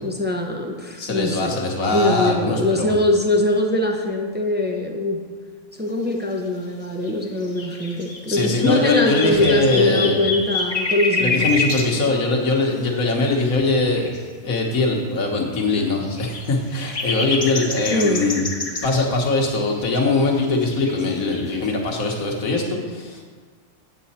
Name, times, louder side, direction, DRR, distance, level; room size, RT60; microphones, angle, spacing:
voice 1, 0.0-1.6 1.9-5.2 5.8-11.5 17.9-18.3, left 1 dB, 10° right, 1 dB, 0.5 m, -22 dB
voice 2, 1.0-3.0 8.3-10.2 11.2-14.1 14.4-18.4 18.8-23.2, left 3 dB, 75° left, 1 dB, 1.7 m, -21 dB
sound 1, 7.1-7.2 7.4-11.9 13.8-14.2 15.0-15.1 15.4-15.5 16.0-19.1 19.5-20.4 20.6-21.7, left 3 dB, 30° left, 0.9 m, -27 dB
8.5 x 7.7 x 4.2 m, 1.5 s
omnidirectional pair, 1.5 m